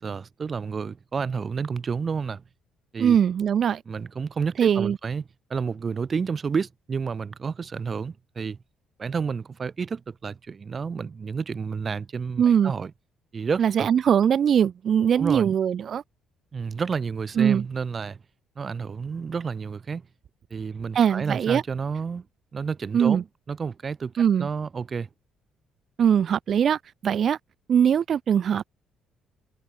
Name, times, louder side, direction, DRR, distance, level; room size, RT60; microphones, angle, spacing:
voice 1, 0.0-2.4 2.9-3.2 3.9-5.2 5.5-8.6 9.0-12.9 13.3-13.9 15.2-15.5 16.5-18.2 18.6-20.0 20.5-22.3 22.5-24.1 24.4-25.1, right 5 dB, 40° right, 7.0 m, -30 dB
voice 2, 3.0-3.8 4.6-5.0 12.4-12.7 13.6-16.0 17.4-17.7 20.9-21.6 22.9-23.2 24.2-24.5 26.0-27.4 27.7-28.6, right 8 dB, 55° right, 2.1 m, -21 dB
supercardioid pair, 65°, 0 cm